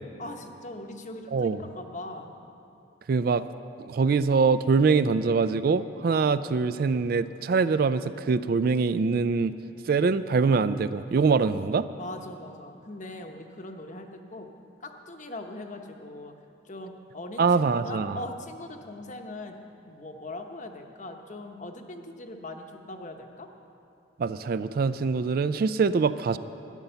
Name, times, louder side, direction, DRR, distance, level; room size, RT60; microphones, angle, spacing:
voice 1, 0.2-2.3 12.0-14.5 14.8-16.3 16.6-19.6 19.9-23.5, left 2 dB, 40° left, 4 dB, 0.9 m, -40 dB
voice 2, 3.1-3.4 3.8-9.5 9.9-11.9 17.4-18.2 24.2-26.4, right 4 dB, 50° right, 13 dB, 0.3 m, -24 dB
13.0 x 10.5 x 6.9 m, 2.7 s
head